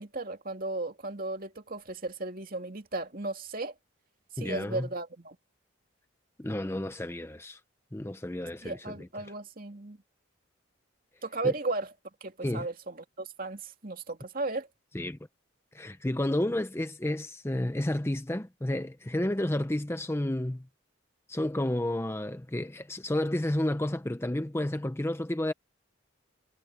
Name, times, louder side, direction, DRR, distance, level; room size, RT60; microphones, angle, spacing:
voice 1, 0.0-3.7 4.3-5.4 8.6-10.0 11.2-11.9 12.2-14.7, right 2 dB, 45° right, 2.7 m, -35 dB
voice 2, 4.4-4.9 6.4-7.6 7.9-9.3 11.4-11.5 12.4-12.7 14.9-15.2 15.7-20.7 21.3-25.5, left 1 dB, 10° left, 0.6 m, -31 dB
head